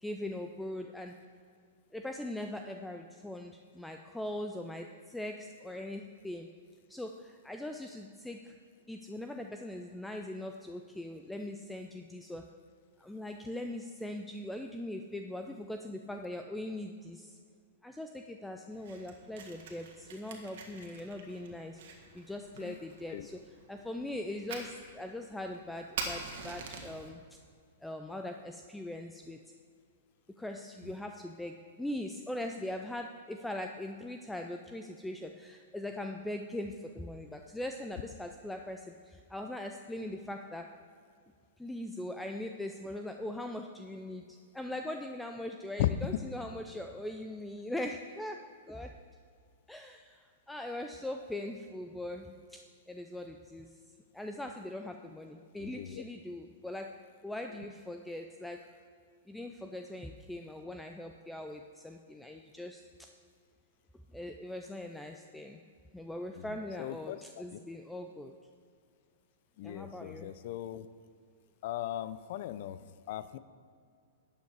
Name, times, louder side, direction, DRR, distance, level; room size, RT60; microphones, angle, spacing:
voice 1, 0.0-1.2 1.9-6.5 6.9-8.5 8.9-12.5 13.0-17.4 17.8-21.8 22.1-23.4 23.7-27.2 27.8-29.4 30.4-40.7 41.6-48.4 48.7-48.9 49.7-53.7 54.1-56.9 57.2-58.7 59.3-62.8 64.1-65.6 65.9-68.3 69.6-70.3, left 1 dB, 5° left, 4 dB, 0.5 m, -41 dB
Fire, 18.7-27.1, right 4 dB, 65° right, 1.8 m, -46 dB
voice 2, 45.8-46.2 55.6-56.0 66.4-67.6 69.6-70.9 71.6-73.4, left 12 dB, 55° left, 14 dB, 0.5 m, -37 dB
12.5 x 8.3 x 4.7 m, 2.2 s
hypercardioid pair, 115°, 0 cm